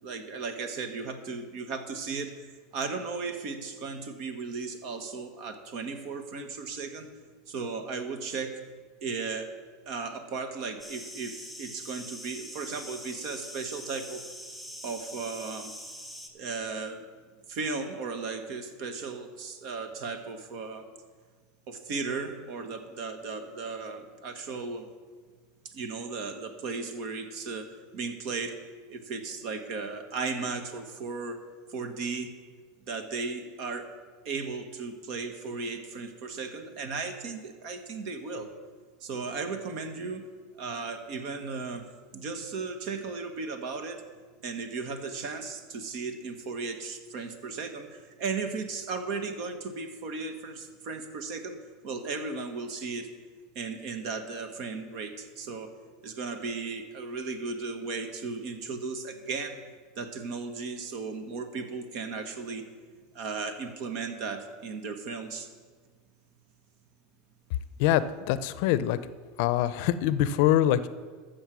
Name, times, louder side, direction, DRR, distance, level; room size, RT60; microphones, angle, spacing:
voice 1, 0.0-2.5 2.7-7.1 7.5-8.6 9.0-9.5 9.8-14.3 14.8-15.7 16.3-17.0 17.5-20.9 21.7-24.9 25.6-31.4 31.7-32.4 32.9-33.9 34.2-38.5 39.0-41.9 42.1-44.0 44.4-51.6 51.8-53.1 53.5-55.7 56.0-59.6 59.9-62.6 63.1-65.5, right 4 dB, 60° right, 7 dB, 1.4 m, -36 dB
sound 1, 10.8-16.3, equal, 10° right, 1.9 m, -43 dB
voice 2, 67.8-69.0 69.4-70.9, left 12 dB, 65° left, 15 dB, 0.5 m, -24 dB
14.0 x 6.6 x 6.2 m, 1.5 s
supercardioid pair, 110°, 0 cm